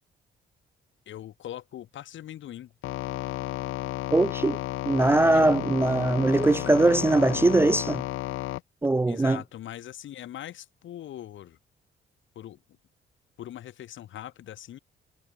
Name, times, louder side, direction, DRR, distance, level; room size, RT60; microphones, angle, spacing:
voice 1, 1.1-2.7 5.3-5.6 9.1-11.6 12.4-12.6 13.4-14.8, left 12 dB, 75° left, 4.0 m, -41 dB
sound 1, 2.8-8.6, left 16 dB, 90° left, 2.0 m, -32 dB
voice 2, 4.1-4.6 4.9-8.0 8.8-9.4, right 2 dB, 10° right, 0.3 m, -21 dB
cardioid pair, 90°, 20 cm